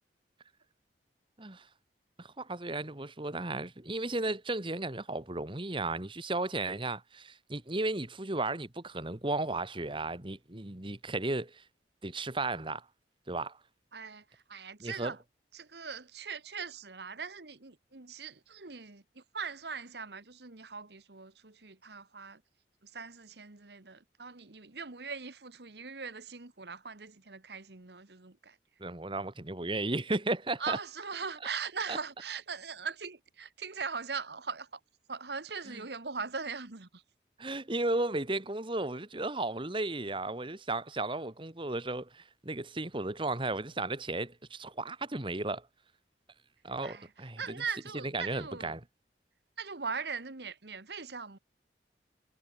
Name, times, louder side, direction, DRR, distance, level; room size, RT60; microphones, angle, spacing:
voice 1, 2.2-11.6 12.0-12.8 13.3-13.6 14.8-15.1 28.8-30.8 31.9-32.0 35.7-35.8 37.4-45.7 46.6-47.6 48.0-48.8, right 2 dB, 30° right, 1.7 m, -34 dB
voice 2, 13.9-15.2 15.5-22.4 22.8-28.6 30.6-34.8 35.1-37.0 46.8-47.1 47.4-48.8 49.6-51.4, right 5 dB, 65° right, 1.5 m, -40 dB
head